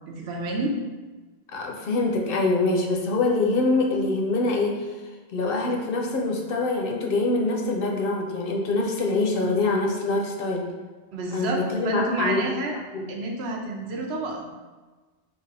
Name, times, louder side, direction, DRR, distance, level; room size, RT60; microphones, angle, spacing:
voice 1, 0.1-0.7 11.1-12.8 13.1-14.5, right 2 dB, 90° right, 1 dB, 0.9 m, -29 dB
voice 2, 1.5-4.7 5.3-10.7 11.3-12.5 13.0-13.1, left 2 dB, 65° left, 0 dB, 0.7 m, -24 dB
3.3 x 2.4 x 3.9 m, 1.3 s
omnidirectional pair, 1.0 m